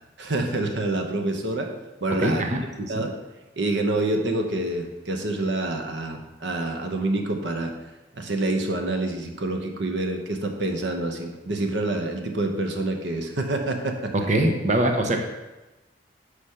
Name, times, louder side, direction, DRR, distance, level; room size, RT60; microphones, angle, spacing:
voice 1, 0.2-1.7 2.0-3.1 3.6-7.7 8.1-14.3, right 2 dB, 75° right, 4 dB, 0.9 m, -27 dB
voice 2, 2.2-3.0 14.3-15.2, right 1 dB, 40° right, 4 dB, 0.8 m, -23 dB
6.5 x 5.0 x 5.7 m, 1.1 s
head